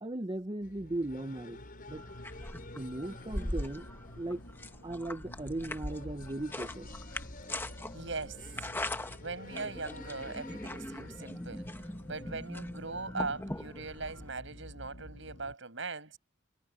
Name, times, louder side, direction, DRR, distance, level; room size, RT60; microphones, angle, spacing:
voice 1, 0.0-1.6 1.9-2.0 2.7-3.9 4.2-4.4 4.8-6.9, right 2 dB, 25° right, 0.8 m, -37 dB
sound 1, 0.6-15.5, equal, 80° left, 6.8 m, -51 dB
sound 2, 0.6-12.5, left 3 dB, 45° left, 6.1 m, -54 dB
sound 3, 1.9-14.3, left 1 dB, 10° left, 1.1 m, -41 dB
voice 2, 7.9-8.7 9.2-11.7 12.1-16.2, right 3 dB, 70° right, 6.1 m, -40 dB
head